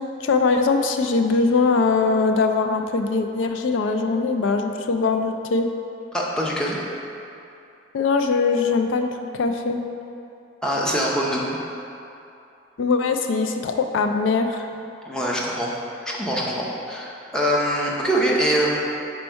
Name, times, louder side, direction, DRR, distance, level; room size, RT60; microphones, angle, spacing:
voice 1, 0.0-5.7 7.9-9.8 12.8-14.7, left 4 dB, 75° left, 6 dB, 0.3 m, -21 dB
voice 2, 6.1-6.8 10.6-11.6 15.0-15.7 16.2-18.8, equal, 5° left, -4 dB, 0.6 m, -23 dB
5.2 x 4.4 x 4.5 m, 2.7 s
head